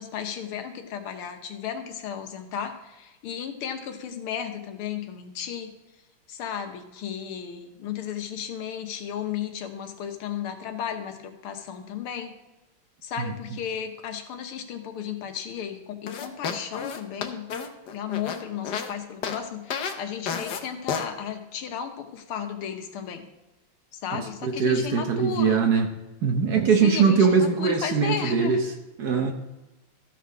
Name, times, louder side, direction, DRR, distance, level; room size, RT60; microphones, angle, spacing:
voice 1, 0.0-5.7 6.3-12.3 13.0-17.5 17.9-23.3 23.9-25.7 26.8-28.6, left 8 dB, 90° left, 6 dB, 1.9 m, -34 dB
sound 1, 16.1-18.9 19.2-19.4 19.7-20.0 20.3-20.6 20.9-21.1, left 6 dB, 60° left, 1.3 m, -31 dB
voice 2, 24.4-25.9 26.2-28.6 29.0-29.3, right 6 dB, 55° right, 4 dB, 1.2 m, -21 dB
14.0 x 6.0 x 4.7 m, 1.1 s
omnidirectional pair, 2.3 m